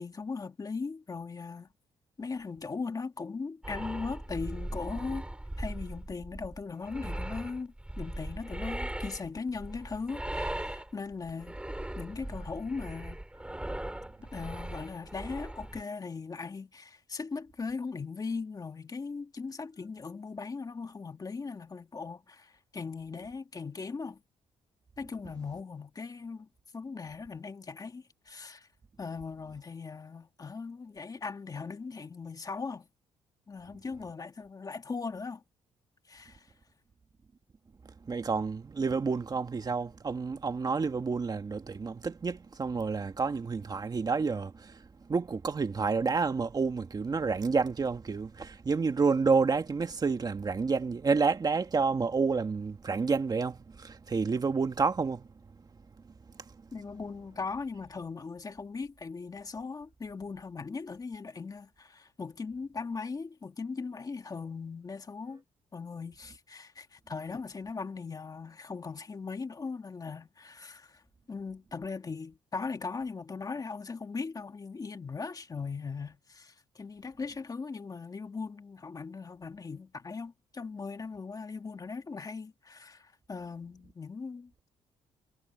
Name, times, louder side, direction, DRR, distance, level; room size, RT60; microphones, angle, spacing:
voice 1, 0.0-1.7 2.2-5.3 5.6-11.6 12.0-13.2 14.3-24.2 25.0-26.5 26.7-28.7 29.0-32.9 33.5-35.4 36.1-36.5 56.7-65.4 65.7-71.0 71.3-84.7, left 4 dB, 30° left, 1.9 m, -39 dB
sound 1, 3.6-15.8, right 1 dB, 10° right, 6.5 m, -39 dB
voice 2, 38.0-55.3, right 4 dB, 35° right, 2.0 m, -29 dB
cardioid pair, 95°, 12 cm